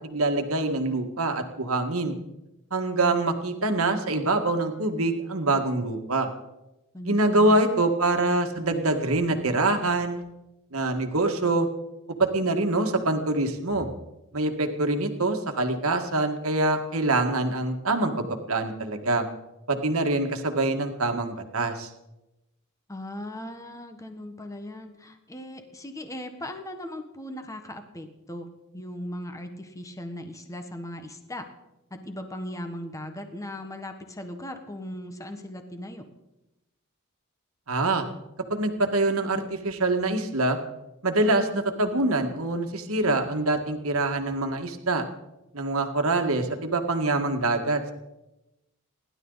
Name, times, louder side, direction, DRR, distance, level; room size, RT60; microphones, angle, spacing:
voice 1, 0.0-2.1 2.7-6.3 7.0-10.2 10.7-11.7 12.2-13.9 14.3-19.3 19.7-21.9 37.7-38.1 38.5-40.6 41.0-45.1 45.5-47.9, right 2 dB, 75° right, 5 dB, 1.9 m, -25 dB
voice 2, 6.9-7.8 22.9-31.5 31.9-36.1, left 1 dB, 15° left, 6 dB, 1.5 m, -38 dB
30.0 x 12.0 x 4.1 m, 0.95 s
head